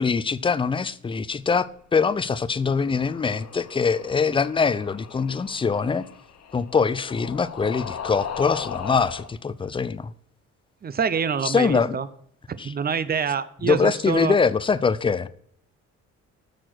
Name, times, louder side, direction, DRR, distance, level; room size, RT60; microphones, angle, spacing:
voice 1, 0.0-6.1 6.5-10.1 11.4-12.0 12.6-12.7 13.6-15.3, left 5 dB, 15° left, 0.4 m, -23 dB
sound 1, 2.6-9.3, left 7 dB, 60° left, 1.2 m, -38 dB
voice 2, 10.8-12.1 12.5-14.4, right 6 dB, 30° right, 0.6 m, -26 dB
6.6 x 6.3 x 6.0 m
cardioid pair, 90°, 30 cm